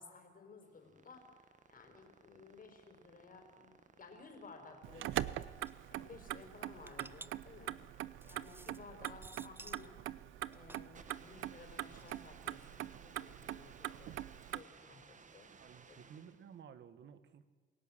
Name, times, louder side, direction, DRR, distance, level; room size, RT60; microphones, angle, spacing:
voice 1, 0.0-5.4 5.9-7.8 8.2-10.0 10.4-15.5 15.9-16.1, left 4 dB, 45° left, 4 dB, 4.9 m, -56 dB
sound 1, 0.6-16.5, right 5 dB, 40° right, 1.6 m, -61 dB
Motor vehicle (road), 4.8-14.6, right 14 dB, 85° right, 0.7 m, -43 dB
sound 2, 5.7-5.8 6.3-9.9 10.3-12.9, right 2 dB, 10° right, 0.6 m, -56 dB
voice 2, 15.5-17.5, right 8 dB, 65° right, 12 dB, 1.8 m, -55 dB
28.0 x 17.0 x 7.4 m, 1.4 s
cardioid pair, 90°, 20 cm